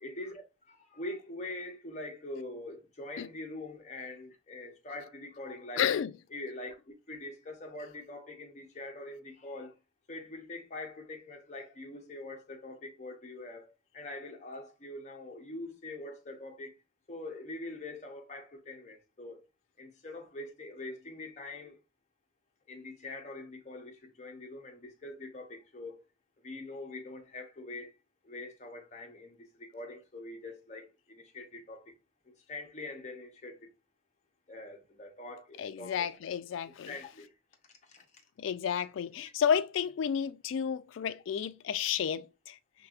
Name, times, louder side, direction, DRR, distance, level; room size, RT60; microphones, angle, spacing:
voice 1, 0.0-5.9 6.3-6.8 7.1-9.7 10.1-16.7 17.1-19.4 19.8-21.8 22.7-26.0 26.4-27.9 28.2-31.9 32.5-33.7 34.5-36.2 36.9-37.3 37.9-38.0, left 2 dB, 35° left, 0.8 m, -44 dB
voice 2, 5.8-6.1 35.6-36.9 38.4-42.6, left 8 dB, 75° left, 0.3 m, -31 dB
4.6 x 3.4 x 2.4 m
head